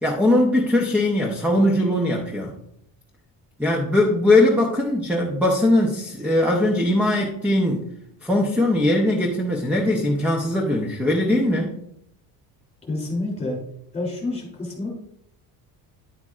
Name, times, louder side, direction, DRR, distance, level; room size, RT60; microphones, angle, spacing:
voice 1, 0.0-2.5 3.6-7.8 8.2-11.8, left 1 dB, 5° right, 0 dB, 0.7 m, -20 dB
voice 2, 12.9-13.6 13.9-14.9, left 2 dB, 15° left, -1 dB, 2.9 m, -28 dB
10.0 x 8.0 x 2.5 m, 0.72 s
cardioid pair, 170°, 44 cm